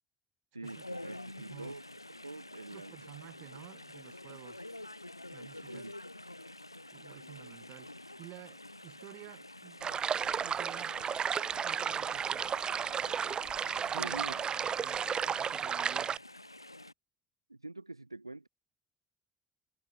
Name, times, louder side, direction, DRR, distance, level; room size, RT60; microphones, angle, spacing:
voice 1, 0.5-1.9 2.2-2.9 5.7-6.0 14.0-14.4 17.5-18.5, right 2 dB, 90° right, 4.2 m, -45 dB
Chatter / Stream, 0.6-16.9, left 1 dB, 90° left, 2.9 m, -49 dB
voice 2, 1.4-1.8 2.7-4.7 5.3-5.9 6.9-9.9 10.4-11.0 11.6-12.5 13.9-14.3 14.8-15.0 15.4-16.2, right 22 dB, 60° right, 6.4 m, -52 dB
sound 1, 9.8-16.2, right 7 dB, 35° right, 0.4 m, -33 dB
figure-of-eight pair, 50°, 2 cm